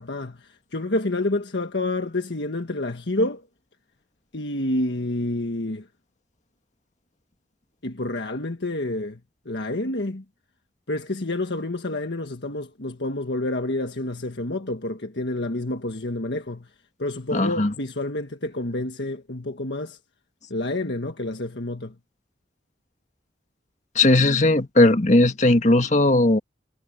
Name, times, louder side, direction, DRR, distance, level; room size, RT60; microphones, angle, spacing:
voice 1, 0.0-3.5 4.3-5.9 7.8-9.2 9.4-10.2 10.9-16.7 17.0-20.0 20.5-22.0, left 2 dB, 75° left, 1.6 m, -28 dB
voice 2, 17.3-17.7 23.9-26.4, left 2 dB, 40° left, 1.8 m, -18 dB
head